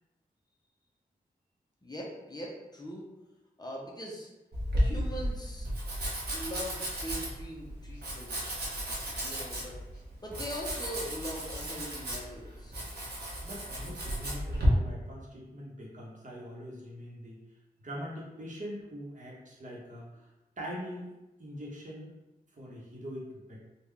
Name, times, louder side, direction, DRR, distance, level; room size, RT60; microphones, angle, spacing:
voice 1, 1.8-3.1 3.6-4.3 4.8-5.7 6.3-9.8 10.2-12.8, equal, 25° left, -2 dB, 0.7 m, -41 dB
Domestic sounds home sounds, 4.5-14.7, equal, 85° right, 1.0 m, -35 dB
voice 2, 13.4-17.4 17.8-20.3 20.6-21.1 21.4-22.1 22.5-23.6, equal, 50° right, -4 dB, 1.0 m, -43 dB
3.7 x 2.3 x 3.3 m, 1.0 s
wide cardioid pair, 85°, 16 cm